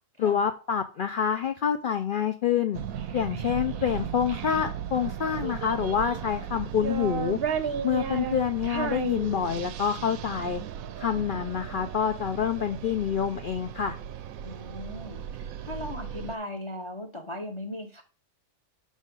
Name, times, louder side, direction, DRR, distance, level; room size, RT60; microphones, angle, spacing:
voice 1, 0.2-2.8 3.1-7.4 7.8-10.6 11.0-14.0, left 8 dB, 75° left, 7 dB, 0.4 m, -27 dB
sound 1, 2.7-16.4, right 9 dB, 80° right, 1.0 m, -37 dB
Child speech kid speaking, 3.0-4.6 5.4-6.3 6.7-9.9, right 7 dB, 55° right, 0.8 m, -34 dB
voice 2, 14.4-18.0, left 1 dB, 25° left, 5 dB, 0.7 m, -38 dB
6.4 x 3.5 x 5.2 m, 0.35 s
omnidirectional pair, 1.5 m